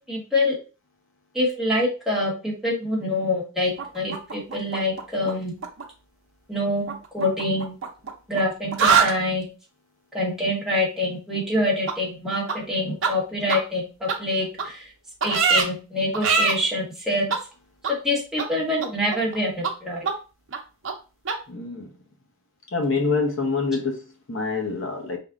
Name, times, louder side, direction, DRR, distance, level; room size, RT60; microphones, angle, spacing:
voice 1, 0.1-0.5 1.3-5.6 6.5-7.8 8.3-9.5 10.1-14.8 15.2-17.4 18.0-20.1, left 1 dB, ahead, -5 dB, 1.3 m, -25 dB
sound 1, 3.8-5.3 5.6-5.8 6.9-8.4 8.7-9.1 11.9-12.0 12.5-12.6 13.0-13.1 13.5-13.6 14.1-14.2 14.6-14.7 15.2-15.6 16.1-16.5 17.3-17.4 17.8-17.9 18.4-18.5 18.8-19.4 19.6-19.7 20.0-20.1 20.5-20.6 20.8-20.9 21.3-21.4, right 6 dB, 60° right, 0.8 m, -22 dB
voice 2, 21.5-21.9 22.7-24.0 24.3-25.2, left 4 dB, 60° left, 3 dB, 0.8 m, -25 dB
5.3 x 3.6 x 2.4 m, 0.33 s
head